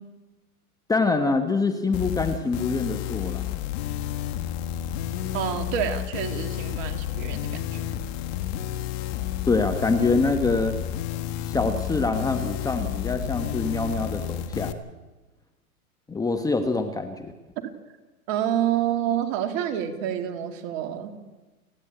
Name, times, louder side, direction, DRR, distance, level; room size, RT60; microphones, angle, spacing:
voice 1, 0.9-3.5 9.5-10.8 11.5-14.7 16.1-17.3, left 3 dB, 10° left, 6 dB, 1.1 m, -25 dB
sound 1, 1.9-14.7, left 12 dB, 45° left, 1.7 m, -31 dB
voice 2, 5.3-7.9 17.6-17.7 18.3-21.2, right 10 dB, 45° right, 6 dB, 2.7 m, -28 dB
29.5 x 11.0 x 9.0 m, 1.2 s
hypercardioid pair, 115°, 44 cm